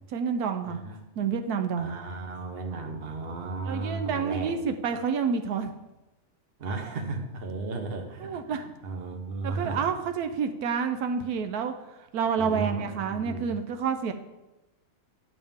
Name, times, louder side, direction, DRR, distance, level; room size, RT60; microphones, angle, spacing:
voice 1, 0.1-0.8 1.2-1.9 3.7-5.7 8.2-8.6 9.4-11.7 12.1-14.1, right 6 dB, 85° right, 6 dB, 1.2 m, -28 dB
voice 2, 0.7-1.0 1.8-4.5 6.6-9.9 12.4-13.5, right 3 dB, 40° right, 4 dB, 1.2 m, -35 dB
11.0 x 7.0 x 3.6 m, 1.0 s
omnidirectional pair, 1.6 m